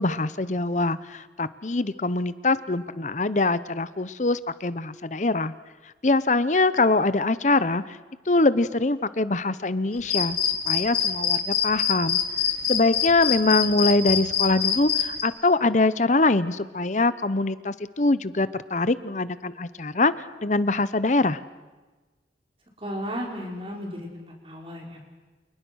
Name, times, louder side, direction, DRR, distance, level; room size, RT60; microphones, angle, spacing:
voice 1, 0.0-5.5 6.0-8.0 8.3-12.2 12.7-20.1 20.4-21.4, left 2 dB, 40° left, 15 dB, 0.8 m, -23 dB
sound 1, 10.1-15.2, left 9 dB, 60° left, 3.1 m, -23 dB
voice 2, 22.8-25.1, equal, 30° right, 0 dB, 5.5 m, -34 dB
30.0 x 28.5 x 6.4 m, 1.2 s
head